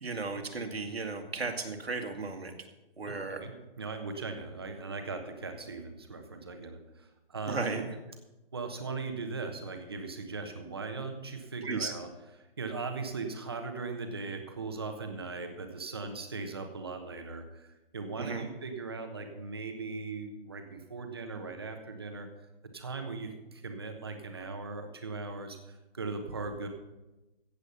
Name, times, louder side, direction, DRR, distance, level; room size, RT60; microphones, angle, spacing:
voice 1, 0.0-2.5 3.0-3.5 7.5-7.8 11.6-11.9 18.2-18.4, right 4 dB, 90° right, 5 dB, 2.2 m, -35 dB
voice 2, 3.2-7.6 8.5-12.1 12.4-22.3 22.7-26.7, right 4 dB, 25° right, 5 dB, 1.0 m, -39 dB
15.0 x 8.2 x 5.5 m, 1.0 s
hypercardioid pair, 180°, 30 cm